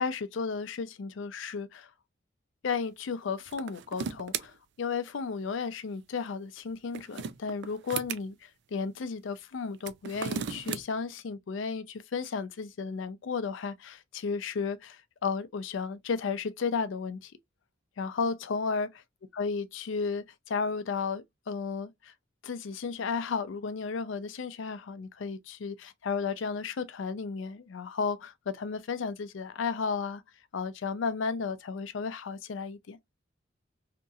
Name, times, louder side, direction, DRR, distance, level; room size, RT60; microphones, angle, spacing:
voice 1, 0.0-1.9 2.6-17.3 18.0-18.9 19.3-22.1 22.4-30.2 30.5-33.0, left 5 dB, 70° left, 0.4 m, -33 dB
sound 1, 3.5-4.5 6.7-8.2 9.7-10.8, right 7 dB, 60° right, 0.3 m, -35 dB
2.9 x 2.6 x 2.3 m
head